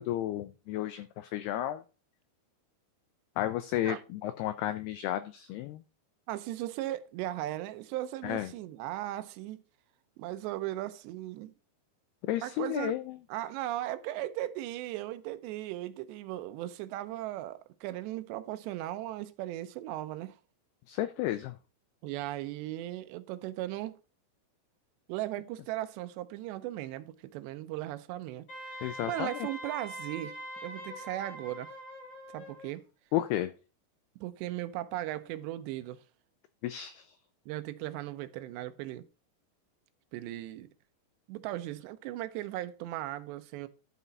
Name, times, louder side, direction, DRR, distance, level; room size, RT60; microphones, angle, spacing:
voice 1, 0.0-1.8 3.4-5.8 8.2-8.5 12.2-13.2 20.9-21.5 28.8-29.5 33.1-33.5 36.6-37.1, left 13 dB, 90° left, 2.2 m, -33 dB
voice 2, 6.3-9.6 10.2-11.5 12.4-13.0 13.3-20.4 22.0-24.0 25.1-31.7 32.3-32.9 34.2-36.0 37.5-39.1 40.1-40.7 41.3-43.7, right 14 dB, 80° right, 2.8 m, -37 dB
Wind instrument woodwind instrument, 28.5-32.7, right 1 dB, 30° left, 3.5 m, -43 dB
11.0 x 6.1 x 4.1 m
omnidirectional pair, 5.3 m